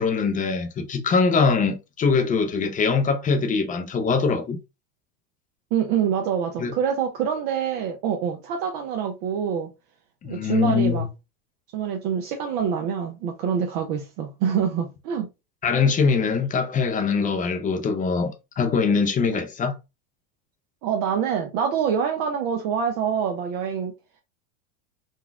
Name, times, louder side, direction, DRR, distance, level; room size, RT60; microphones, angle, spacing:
voice 1, 0.0-4.6 6.6-6.7 10.2-11.1 15.6-19.7, left 5 dB, 20° left, 0.5 m, -22 dB
voice 2, 5.7-9.7 10.2-11.1 11.7-15.3 19.3-19.4 20.8-23.9, right 7 dB, 50° right, 0.6 m, -26 dB
4.0 x 2.2 x 2.3 m
supercardioid pair, 115°, 44 cm